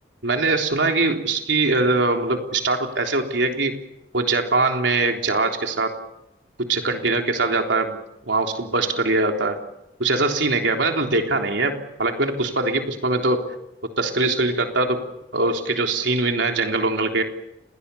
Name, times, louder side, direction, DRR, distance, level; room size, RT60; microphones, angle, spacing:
voice 1, 0.2-3.7 4.1-5.9 6.7-8.0 8.2-9.6 10.0-13.4 14.0-15.0 15.3-17.2, right 3 dB, 90° right, 3 dB, 3.7 m, -22 dB
30.0 x 22.0 x 7.1 m, 0.90 s
head